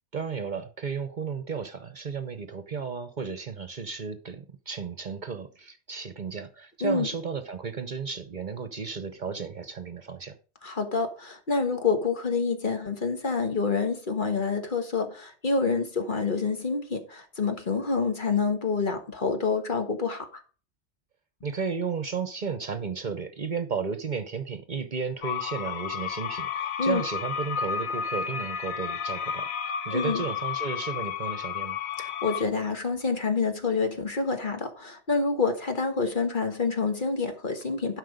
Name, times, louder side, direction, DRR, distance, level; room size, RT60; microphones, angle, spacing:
voice 1, 0.1-10.3 21.4-31.8, right 5 dB, 45° right, 0.9 m, -33 dB
voice 2, 10.6-20.4 26.8-27.0 29.9-30.2 32.0-38.0, left 4 dB, 50° left, 1.6 m, -27 dB
sound 1, 25.2-32.4, left 7 dB, 75° left, 1.0 m, -32 dB
12.0 x 5.0 x 5.0 m
omnidirectional pair, 1.1 m